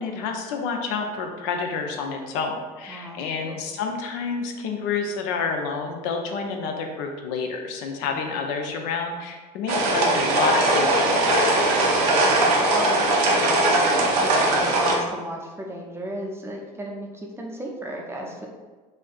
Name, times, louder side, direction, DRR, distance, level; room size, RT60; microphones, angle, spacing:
voice 1, 0.0-11.6, left 5 dB, 55° left, 3 dB, 0.5 m, -29 dB
voice 2, 2.9-3.6 8.0-8.3 12.2-18.5, right 1 dB, 10° right, -1 dB, 0.6 m, -34 dB
sound 1, 9.7-15.0, right 2 dB, 65° right, 0.6 m, -20 dB
4.0 x 2.5 x 2.3 m, 1.3 s
figure-of-eight pair, 60°, 21 cm